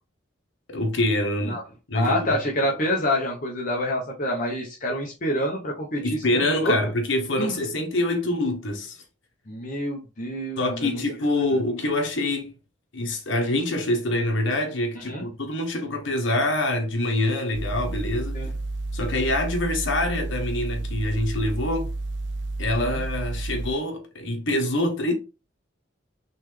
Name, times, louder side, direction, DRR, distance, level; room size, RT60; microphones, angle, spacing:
voice 1, 0.7-1.6 1.9-2.4 6.0-9.0 10.6-12.5 12.9-18.4 18.9-21.9 22.6-25.1, left 1 dB, 75° left, 1.1 m, -25 dB
voice 2, 1.9-6.8 7.4-7.6 9.5-11.0 15.1-15.2 18.3-18.5 22.8-23.0, left 1 dB, 40° left, 0.9 m, -27 dB
sound 1, 17.5-23.7, right 2 dB, 65° right, 0.6 m, -31 dB
4.1 x 3.3 x 3.2 m
head